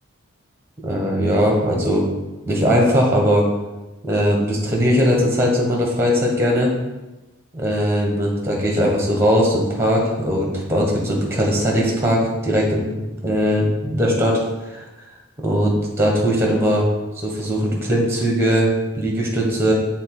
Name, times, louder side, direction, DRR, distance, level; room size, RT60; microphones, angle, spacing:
voice 1, 0.8-2.0 2.5-3.5 4.0-6.7 7.5-14.4 14.6-14.8 15.4-16.9 17.2-18.7 18.9-19.7, equal, 10° right, -1 dB, 1.3 m, -19 dB
6.4 x 3.8 x 4.8 m, 1.1 s
head